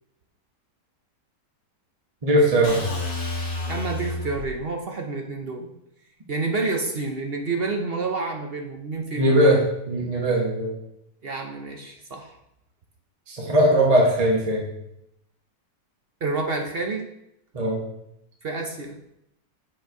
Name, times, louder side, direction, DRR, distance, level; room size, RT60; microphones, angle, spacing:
voice 1, 2.2-2.8 9.2-9.6 9.9-10.7 13.3-14.6 17.5-17.8, right 1 dB, 25° right, -3 dB, 1.2 m, -19 dB
sound 1, 2.6-4.6, left 2 dB, 40° left, 1.9 m, -30 dB
voice 2, 3.7-5.7 6.3-9.6 11.2-12.4 16.2-17.0 18.4-19.0, right 3 dB, 50° right, 2 dB, 0.7 m, -29 dB
7.7 x 4.4 x 4.6 m, 0.79 s
omnidirectional pair, 1.9 m